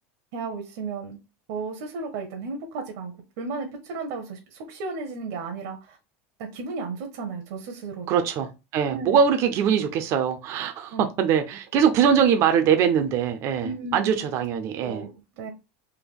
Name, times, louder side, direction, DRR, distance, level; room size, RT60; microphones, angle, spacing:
voice 1, 0.3-1.2 1.5-6.0 6.5-8.2 8.9-9.2 10.9-11.1 13.6-14.2 14.8-15.5, right 4 dB, 70° right, 0.9 m, -34 dB
voice 2, 8.1-15.0, right 7 dB, 45° right, 0.5 m, -22 dB
3.5 x 2.2 x 3.5 m
supercardioid pair, 130°, 7 cm